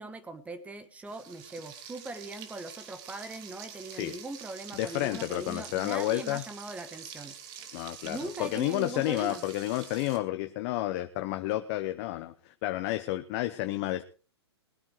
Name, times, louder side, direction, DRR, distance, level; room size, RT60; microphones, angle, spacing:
voice 1, 0.0-7.4 8.0-9.4, right 3 dB, 10° right, 11 dB, 1.5 m, -40 dB
Frying (food), 1.1-10.2, right 8 dB, 40° right, 2.3 m, -46 dB
voice 2, 4.8-6.4 7.7-14.0, left 16 dB, 40° left, 8 dB, 1.0 m, -31 dB
20.5 x 8.8 x 4.8 m, 0.36 s
hypercardioid pair, 125°, 14 cm